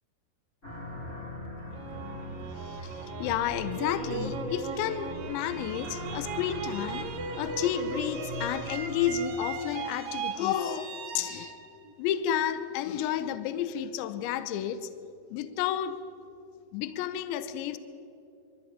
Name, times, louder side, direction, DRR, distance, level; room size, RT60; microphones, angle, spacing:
sound 1, 0.6-9.2, equal, 15° left, 3.0 m, -40 dB
sound 2, 1.7-12.8, right 5 dB, 80° right, 1.4 m, -39 dB
voice 1, 2.6-7.1 7.4-11.5 12.0-14.9 15.3-16.0 16.7-17.8, left 10 dB, 80° left, 13 dB, 2.8 m, -31 dB
24.0 x 13.5 x 8.7 m, 2.7 s
omnidirectional pair, 5.7 m